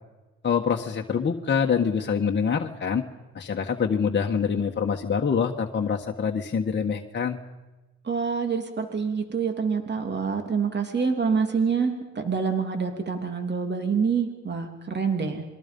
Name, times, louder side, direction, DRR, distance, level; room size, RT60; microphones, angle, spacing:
voice 1, 0.4-3.0 3.3-7.4, left 6 dB, 35° left, 2 dB, 1.5 m, -25 dB
voice 2, 8.0-15.4, right 5 dB, 35° right, 5 dB, 3.2 m, -26 dB
27.5 x 22.5 x 5.5 m, 1.2 s
cardioid pair, 90°, 30 cm